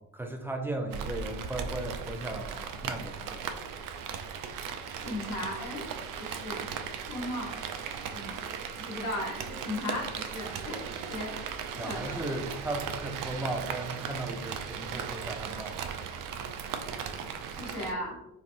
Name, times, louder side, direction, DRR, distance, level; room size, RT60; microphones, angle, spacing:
voice 1, 0.0-3.6 11.8-15.8, right 2 dB, 5° right, 3 dB, 0.5 m, -36 dB
Rain, 0.9-17.9, right 7 dB, 55° right, 0.5 m, -37 dB
voice 2, 5.0-5.9 6.2-6.6 7.1-7.6 8.1-8.3 8.8-11.3 11.7-12.2 17.5-18.2, left 1 dB, 70° left, -4 dB, 1.4 m, -36 dB
3.3 x 2.6 x 2.5 m, 0.91 s
hypercardioid pair, 50°, 39 cm